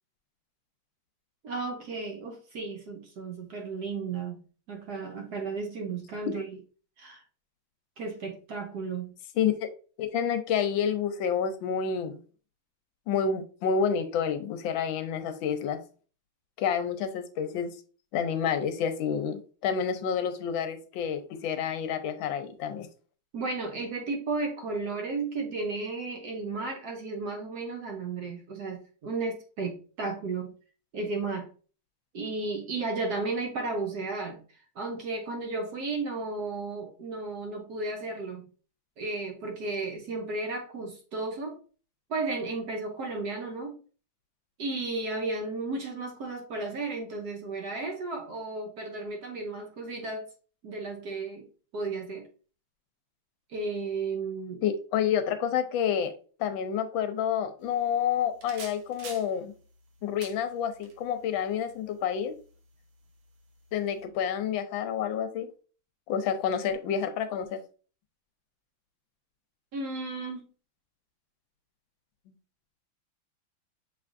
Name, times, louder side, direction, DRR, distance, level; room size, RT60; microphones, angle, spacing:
voice 1, 1.4-4.4 4.7-6.4 7.0-7.2 8.0-9.1 23.3-30.5 30.9-31.5 32.1-38.5 39.0-41.6 42.1-43.8 44.6-50.3 50.6-51.5 51.7-52.3 53.5-54.6 69.7-70.5, right 3 dB, 65° right, 1.1 m, -34 dB
voice 2, 9.4-9.7 10.0-12.2 13.1-15.8 16.6-17.7 18.1-22.9 54.6-56.1 56.4-59.5 60.0-62.3 63.7-65.5 66.1-67.6, left 7 dB, 75° left, 1.3 m, -29 dB
sound 1, 57.6-64.0, right 4 dB, 80° right, 1.7 m, -51 dB
6.1 x 3.3 x 2.5 m
omnidirectional pair, 2.2 m